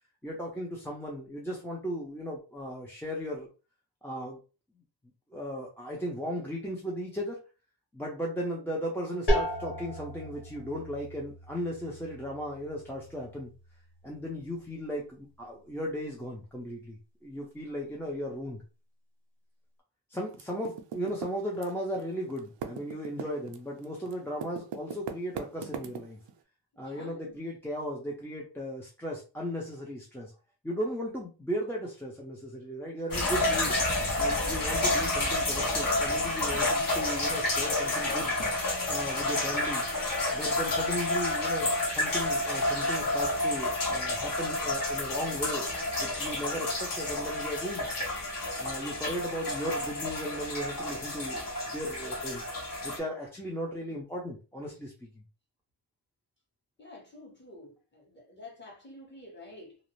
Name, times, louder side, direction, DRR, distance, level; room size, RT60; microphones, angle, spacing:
voice 1, 0.2-3.5 4.0-4.4 5.3-7.4 7.9-13.5 14.0-18.6 20.1-26.2 26.8-30.3 30.6-33.8 34.1-38.3 38.9-39.8 40.3-45.6 46.0-47.9 48.6-52.4 52.8-55.2, equal, 5° left, 0.5 m, -36 dB
sound 1, 9.3-14.8, equal, 70° left, 1.3 m, -35 dB
Typing, 20.3-22.0 22.3-26.3, right 7 dB, 75° right, 0.5 m, -39 dB
voice 2, 26.8-27.4 56.8-59.8, left 2 dB, 25° left, 1.2 m, -49 dB
sound 2, 33.1-53.0, left 2 dB, 50° left, 0.9 m, -30 dB
2.5 x 2.0 x 3.0 m
wide cardioid pair, 115°, 42 cm